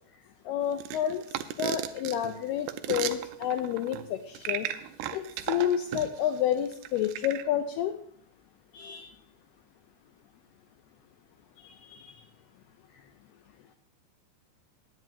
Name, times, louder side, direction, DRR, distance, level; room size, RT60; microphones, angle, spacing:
voice 1, 0.5-4.7 5.1-7.9 8.7-9.1 11.6-12.1, left 10 dB, 80° left, 5 dB, 2.4 m, -30 dB
sound 1, 0.8-6.2 6.7-7.4, right 12 dB, 80° right, 2.5 m, -35 dB
20.5 x 9.3 x 2.8 m, 0.64 s
omnidirectional pair, 5.1 m